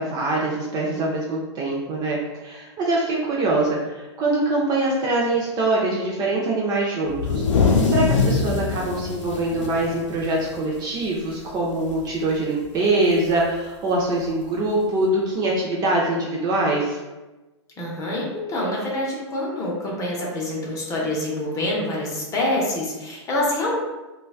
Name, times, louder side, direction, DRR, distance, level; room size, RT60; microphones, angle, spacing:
voice 1, 0.0-17.0, right 2 dB, 25° right, -3 dB, 0.4 m, -24 dB
sound 1, 7.1-10.8 11.2-11.3 11.7-12.1 13.3-13.4 14.4-14.5, left 4 dB, 85° left, 0.6 m, -23 dB
voice 2, 17.8-23.8, left 1 dB, 20° left, -3 dB, 0.7 m, -26 dB
3.1 x 2.2 x 2.3 m, 1.1 s
hypercardioid pair, 120°, 15 cm